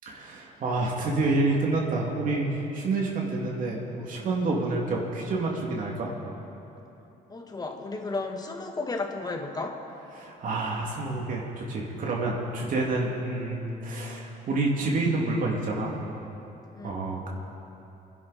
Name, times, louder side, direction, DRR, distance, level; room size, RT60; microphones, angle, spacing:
voice 1, 0.1-6.1 10.2-16.0 16.8-17.3, right 2 dB, 50° right, -2 dB, 2.5 m, -28 dB
voice 2, 7.3-9.8 16.7-17.0, left 3 dB, 25° left, 3 dB, 1.7 m, -33 dB
26.5 x 11.5 x 4.2 m, 3.0 s
cardioid pair, 110°, 17 cm